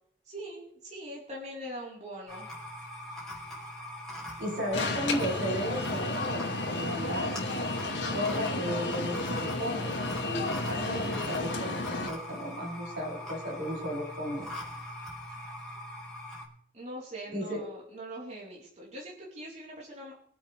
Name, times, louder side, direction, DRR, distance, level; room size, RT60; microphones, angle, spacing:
voice 1, 0.3-2.5 16.7-20.1, right 1 dB, 40° right, -4 dB, 4.2 m, -42 dB
sound 1, 2.3-16.5, left 1 dB, 5° left, 4.1 m, -41 dB
voice 2, 4.4-7.4 8.1-9.9 10.7-14.5 17.3-17.6, equal, 85° right, -2 dB, 7.2 m, -34 dB
Alarm, 4.7-12.1, left 2 dB, 75° left, 2.6 m, -32 dB
24.5 x 8.5 x 3.5 m, 0.68 s
head